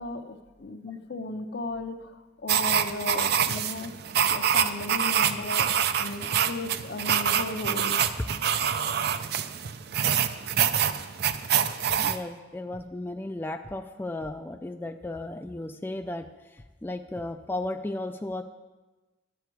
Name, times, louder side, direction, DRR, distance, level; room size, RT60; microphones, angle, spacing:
voice 1, 0.0-2.0 2.4-3.9 4.3-5.7 6.0-8.0, left 3 dB, 60° left, 7 dB, 0.7 m, -35 dB
sound 1, 2.5-12.2, right 8 dB, 60° right, 0.4 m, -26 dB
voice 2, 12.0-16.3 16.5-18.4, left 2 dB, 10° left, 6 dB, 0.3 m, -35 dB
10.5 x 8.3 x 4.6 m, 1.2 s
head